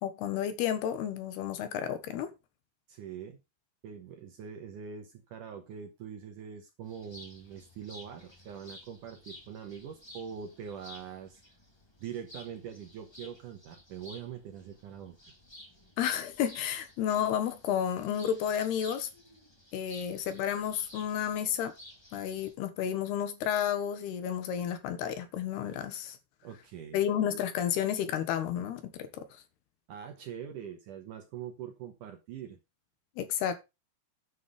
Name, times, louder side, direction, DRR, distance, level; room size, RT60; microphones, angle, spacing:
voice 1, 0.0-2.3 16.0-19.1 19.7-21.7 22.1-26.2 26.9-29.2 33.2-33.6, left 9 dB, 75° left, 3.1 m, -31 dB
voice 2, 2.9-3.4 3.8-11.4 12.0-15.2 26.4-27.0 29.9-32.6, right 8 dB, 65° right, 2.1 m, -43 dB
sound 1, 6.8-22.5, left 1 dB, 10° left, 1.3 m, -54 dB
9.9 x 7.2 x 5.1 m
omnidirectional pair, 4.9 m